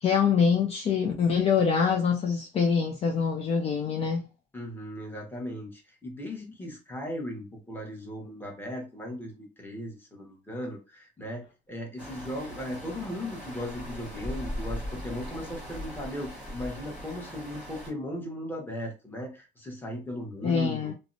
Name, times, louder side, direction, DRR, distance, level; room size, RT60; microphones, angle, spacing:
voice 1, 0.0-4.3 20.4-20.9, left 6 dB, 40° left, 0.4 m, -25 dB
voice 2, 4.5-20.9, left 1 dB, 10° left, 1.0 m, -37 dB
sound 1, 12.0-17.9, equal, 5° right, 1.3 m, -39 dB
2.6 x 2.1 x 2.6 m
cardioid pair, 110°, 17 cm